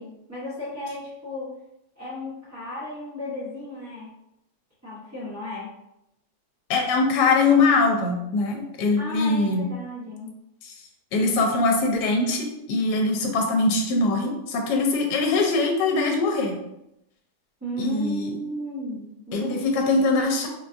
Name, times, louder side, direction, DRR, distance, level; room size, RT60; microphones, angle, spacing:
voice 1, 0.0-1.5 2.0-4.1 4.8-5.7 9.0-10.3 17.6-19.9, equal, 15° right, -12 dB, 0.5 m, -34 dB
voice 2, 6.7-9.6 10.6-10.8 11.1-16.5 17.8-18.4 19.3-20.5, left 3 dB, 80° left, 1 dB, 1.1 m, -22 dB
4.0 x 2.3 x 2.5 m, 0.86 s
omnidirectional pair, 1.8 m